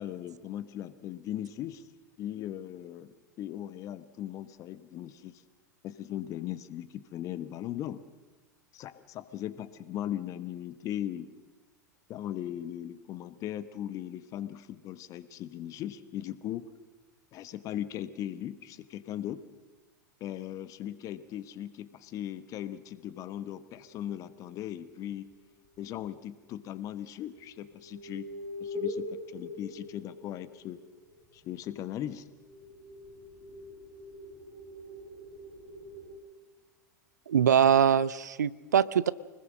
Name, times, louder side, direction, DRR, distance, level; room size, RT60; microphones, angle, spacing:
voice 1, 0.0-1.9 2.2-5.4 5.8-8.0 8.7-11.3 12.1-16.7 17.3-19.4 20.2-25.3 25.8-28.3 28.6-30.8 31.3-32.2, left 11 dB, 35° left, 14 dB, 1.3 m, -38 dB
sound 1, 22.5-24.2 25.8-25.9 27.2-30.9 31.8-36.2, left 2 dB, 35° right, 4.0 m, -43 dB
voice 2, 37.3-39.1, right 8 dB, 65° right, 19 dB, 0.6 m, -23 dB
25.5 x 20.0 x 6.3 m, 1.3 s
figure-of-eight pair, 90°, 10 cm